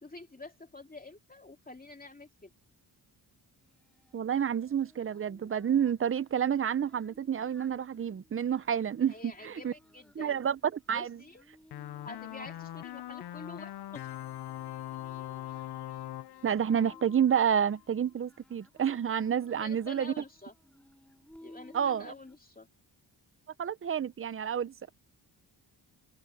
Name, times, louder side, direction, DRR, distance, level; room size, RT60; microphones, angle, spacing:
voice 1, 0.0-2.5 9.1-10.4 10.9-11.5 12.0-14.1 19.5-20.5 21.4-22.7, left 3 dB, 20° left, 2.8 m, -48 dB
Singing, 3.6-22.4, equal, 5° left, 3.7 m, -60 dB
voice 2, 4.1-9.7 10.2-11.2 16.4-20.2 21.7-22.1 23.6-24.9, right 8 dB, 30° right, 0.6 m, -29 dB
sound 1, 11.7-17.8, left 13 dB, 65° left, 0.6 m, -42 dB
open air
cardioid pair, 105°, 42 cm